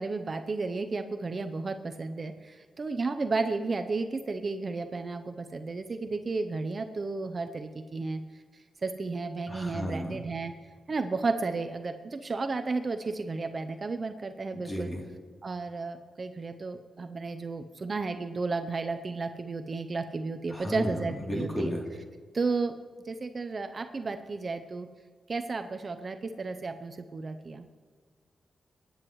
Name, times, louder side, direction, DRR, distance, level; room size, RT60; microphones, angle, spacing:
voice 1, 0.0-8.2 8.8-10.5 10.9-14.9 15.4-21.7 22.3-22.7 23.1-24.9 25.3-27.7, right 3 dB, 45° right, 8 dB, 0.6 m, -33 dB
voice 2, 9.5-10.2 14.5-15.0 20.5-21.8, equal, 20° left, -1 dB, 3.1 m, -34 dB
23.0 x 9.6 x 3.1 m, 1.5 s
cardioid pair, 75°, 0 cm